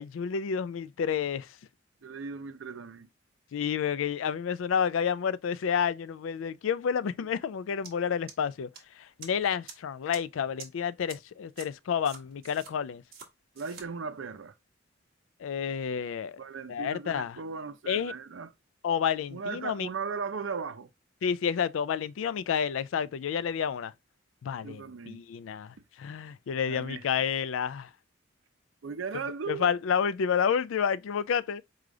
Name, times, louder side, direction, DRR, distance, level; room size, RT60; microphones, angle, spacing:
voice 1, 0.0-1.5 3.5-8.7 9.0-13.0 15.4-16.4 16.7-17.4 17.9-18.1 18.8-19.9 21.2-23.9 24.4-27.9 29.5-31.6, left 7 dB, 85° left, 0.3 m, -30 dB
voice 2, 2.0-3.1 7.2-7.3 13.6-14.5 16.4-18.5 19.3-20.9 24.6-25.2 26.7-27.0 28.8-29.7, right 5 dB, 75° right, 0.6 m, -37 dB
sound 1, 7.8-7.9 8.3-8.8 9.2-9.3 9.7-9.8 10.1-10.2 10.6-10.7 11.1-11.2 11.6-11.7 12.1-12.7 13.1-13.3 13.6-13.9, right 6 dB, 50° right, 1.1 m, -45 dB
4.9 x 2.4 x 3.7 m
head